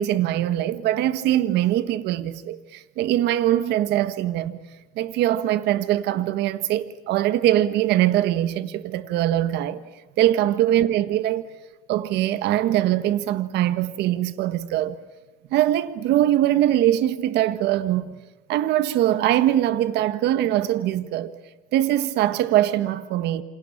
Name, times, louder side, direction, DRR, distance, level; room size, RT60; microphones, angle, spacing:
voice 1, 0.0-4.6 4.9-9.8 10.2-11.5 11.9-15.0 15.5-18.2 18.5-21.3 21.7-23.4, right 13 dB, 85° right, 1.5 m, -22 dB
29.0 x 26.5 x 7.3 m
cardioid pair, 110°, 17 cm